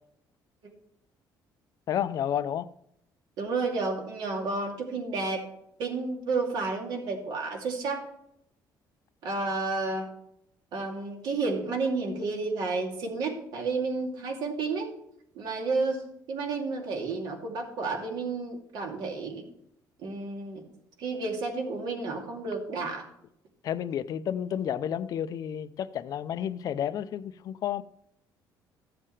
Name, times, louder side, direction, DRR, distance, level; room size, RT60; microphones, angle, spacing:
voice 1, 1.9-2.7 23.6-27.8, left 9 dB, 50° left, 0.5 m, -31 dB
voice 2, 3.4-5.5 5.8-8.0 9.2-10.1 10.7-14.9 15.3-16.0 16.3-19.4 20.0-20.6 21.0-23.1, right 3 dB, 65° right, 2.7 m, -31 dB
14.5 x 7.6 x 3.3 m
cardioid pair, 145°, 8 cm